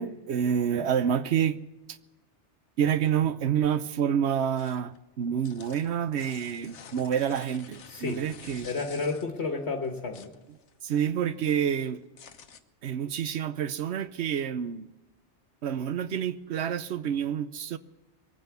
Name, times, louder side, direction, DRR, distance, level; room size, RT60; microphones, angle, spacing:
voice 1, 0.0-1.6 1.9-2.0 2.8-8.7 10.8-12.0 12.8-14.9 15.6-17.8, right 8 dB, 75° right, 1.0 m, -28 dB
sound 1, 4.6-5.0 5.3-9.5 9.8-11.1 11.4-12.6, left 6 dB, 90° left, 1.2 m, -49 dB
voice 2, 7.8-8.2 8.6-10.3, left 4 dB, 75° left, 1.6 m, -32 dB
22.0 x 9.5 x 6.9 m
omnidirectional pair, 1.2 m